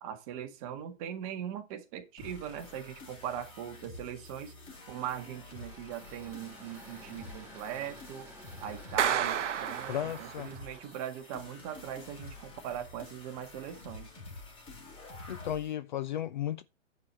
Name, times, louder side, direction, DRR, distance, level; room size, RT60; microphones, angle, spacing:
voice 1, 0.0-4.5 4.9-8.3 8.6-14.1, right 10 dB, 30° right, 1.6 m, -40 dB
sound 1, 2.2-15.7, left 3 dB, 15° left, 3.5 m, -49 dB
Engine / Mechanisms, 5.4-13.8, right 1 dB, 5° right, 2.8 m, -53 dB
Clapping, 9.0-10.6, right 9 dB, 65° right, 0.9 m, -31 dB
voice 2, 9.9-10.5 15.3-16.6, left 11 dB, 40° left, 0.6 m, -34 dB
10.0 x 4.9 x 5.5 m
hypercardioid pair, 145°, 38 cm